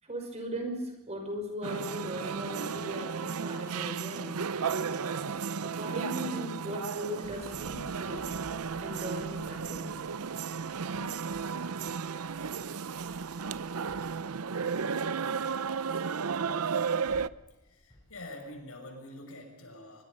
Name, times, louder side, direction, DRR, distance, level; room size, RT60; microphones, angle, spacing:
voice 1, 0.0-5.3 5.6-8.4 8.8-10.1 10.9-11.1, equal, 30° right, 4 dB, 5.5 m, -39 dB
sound 1, 1.6-17.3, right 6 dB, 80° right, 0.6 m, -34 dB
Run, 7.2-18.6, equal, 20° left, 7.7 m, -56 dB
voice 2, 17.5-20.0, left 1 dB, 75° left, 4 dB, 6.5 m, -46 dB
26.0 x 23.5 x 5.4 m, 1.0 s
head